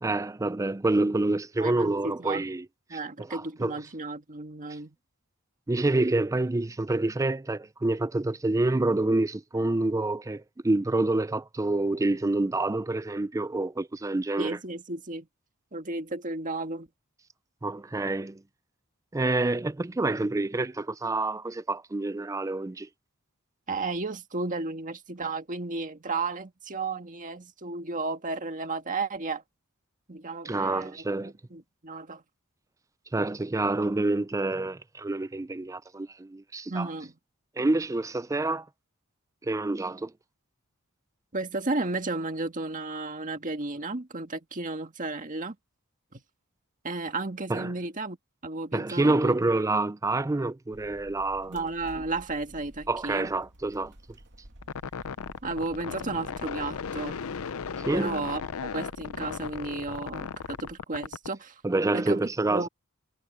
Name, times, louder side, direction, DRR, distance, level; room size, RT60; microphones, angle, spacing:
voice 1, 0.0-2.7 2.9-3.8 5.7-14.6 17.6-18.4 19.1-22.9 30.4-31.3 33.1-36.9 37.6-38.7 39.4-40.1 47.5-47.7 48.7-51.6 52.9-53.9 57.9-58.3 61.6-62.7, right 2 dB, 15° right, 0.4 m, -27 dB
voice 2, 1.6-2.4 2.9-5.0 14.4-15.3 15.7-16.9 23.7-29.4 30.1-32.2 36.7-37.1 41.3-45.6 46.8-48.2 48.4-49.3 51.5-53.3 55.4-57.2 57.9-61.6 61.9-62.2 62.5-62.7, right 3 dB, 40° right, 1.8 m, -33 dB
sound 1, 50.7-60.8, right 1 dB, 55° right, 2.7 m, -51 dB
sound 2, 54.6-61.3, left 6 dB, 70° left, 0.6 m, -36 dB
head